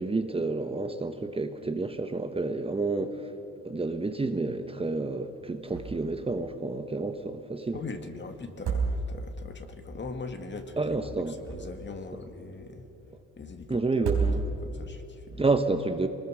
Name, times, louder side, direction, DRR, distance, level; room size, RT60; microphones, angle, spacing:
voice 1, 0.0-3.1 3.6-7.8 10.8-11.3 13.7-14.4 15.4-16.1, right 3 dB, 20° right, 7 dB, 1.1 m, -29 dB
sound 1, 5.7-6.2 6.5-6.6 8.4-9.4 11.1-12.0 13.9-14.8, right 4 dB, 90° right, 4.3 m, -30 dB
voice 2, 7.7-12.9 13.4-14.1 14.6-15.5, left 3 dB, 35° left, 6 dB, 2.0 m, -41 dB
24.0 x 20.0 x 6.3 m, 2.9 s
cardioid pair, 90°, 30 cm